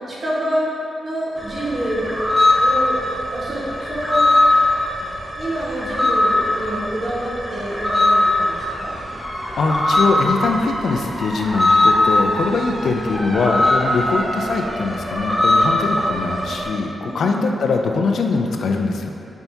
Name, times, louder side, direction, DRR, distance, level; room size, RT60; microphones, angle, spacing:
voice 1, 0.1-2.1 2.6-3.0 3.3-4.3 5.3-8.9 17.0-17.3, right 1 dB, 50° right, -7 dB, 1.3 m, -27 dB
sound 1, 1.4-16.7, left 1 dB, 5° right, 0.7 m, -20 dB
voice 2, 9.6-19.1, left 4 dB, 75° left, 3 dB, 0.3 m, -22 dB
5.7 x 3.4 x 2.7 m, 2.9 s
cardioid pair, 60°, 0 cm